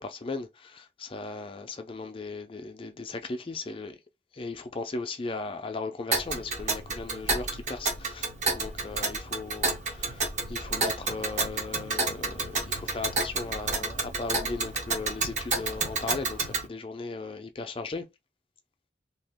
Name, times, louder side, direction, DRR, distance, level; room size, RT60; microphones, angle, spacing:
voice 1, 0.0-4.0 4.3-8.3 8.5-18.0, left 3 dB, 30° left, 0.4 m, -37 dB
Tick, 6.1-16.7, right 3 dB, 40° right, 0.7 m, -30 dB
2.8 x 2.4 x 3.4 m
head